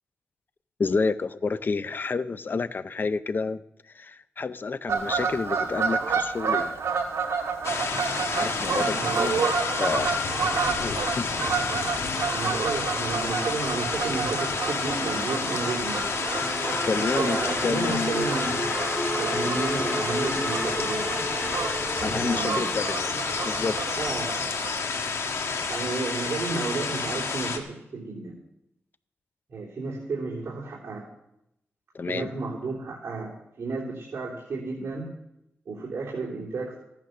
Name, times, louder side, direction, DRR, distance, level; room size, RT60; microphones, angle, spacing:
voice 1, 0.8-3.6 4.0-6.7 8.3-9.5 9.8-10.2 10.8-11.3 16.9-17.4 17.6-18.2 22.0-23.2 23.5-24.0 31.9-32.3, left 4 dB, 45° left, 13 dB, 0.6 m, -29 dB
Fowl / Bird vocalization bird call bird song, 4.9-24.8, right 5 dB, 85° right, 2.0 m, -30 dB
sound 1, 7.6-27.6, left 4 dB, 75° left, 1.6 m, -30 dB
voice 2, 8.7-9.3 12.3-16.1 16.9-18.7 19.1-21.1 22.2-22.7 24.0-24.3 25.7-28.3 29.5-31.1 32.1-35.1 35.6-36.8, right 3 dB, 65° right, -6 dB, 3.3 m, -32 dB
sound 2, 12.7-23.7, equal, 15° left, 5.3 m, -34 dB
15.0 x 9.1 x 6.6 m, 0.81 s
wide cardioid pair, 90°, 5 cm